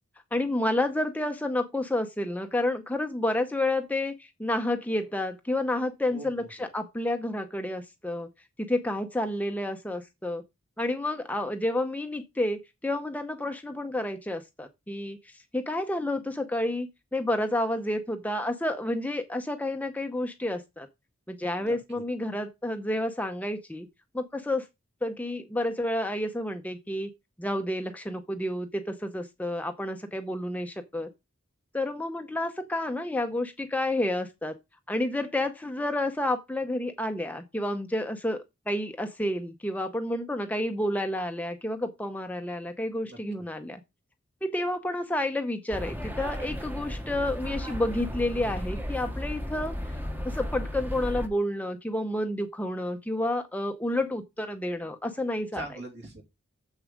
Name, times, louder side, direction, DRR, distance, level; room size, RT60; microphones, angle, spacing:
voice 1, 0.3-8.3 8.6-10.4 10.8-20.9 21.3-23.9 24.1-24.7 25.0-27.1 27.4-31.1 31.7-34.6 34.9-43.8 44.4-50.0 50.2-55.6, left 1 dB, 5° left, 0.6 m, -30 dB
voice 2, 6.1-6.5 21.6-22.0 43.0-43.2 55.5-56.2, right 1 dB, 55° right, 3.0 m, -41 dB
sound 1, 45.7-51.3, equal, 10° right, 1.0 m, -34 dB
7.3 x 6.8 x 5.0 m
head